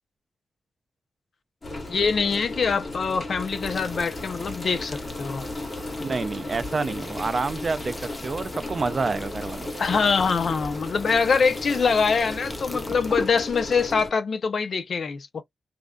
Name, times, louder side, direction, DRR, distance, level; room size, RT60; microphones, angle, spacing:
sound 1, 1.6-14.1, left 2 dB, 40° left, 1.3 m, -35 dB
voice 1, 1.9-5.5 9.8-15.4, left 5 dB, 60° left, 0.5 m, -24 dB
sound 2, 3.4-13.3, left 2 dB, 20° left, 0.7 m, -40 dB
voice 2, 6.0-9.7, right 4 dB, 45° right, 0.3 m, -28 dB
2.5 x 2.2 x 2.3 m
wide cardioid pair, 105°, 0 cm